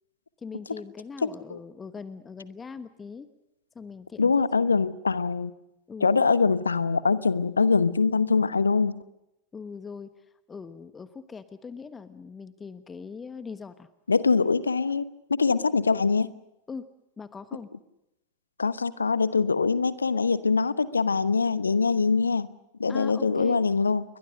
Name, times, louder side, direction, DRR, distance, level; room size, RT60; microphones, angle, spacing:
voice 1, 0.4-3.3 3.7-4.4 5.9-6.2 9.5-10.1 10.5-13.9 16.7-16.8 17.2-17.7 22.9-23.6, left 5 dB, 15° left, 13 dB, 1.2 m, -41 dB
voice 2, 1.2-1.6 4.2-5.5 6.0-9.0 14.1-15.0 15.3-16.3 18.6-22.5 22.8-24.0, left 4 dB, 75° left, 17 dB, 1.0 m, -23 dB
29.5 x 22.5 x 6.5 m, 0.88 s
figure-of-eight pair, 90°, 0 cm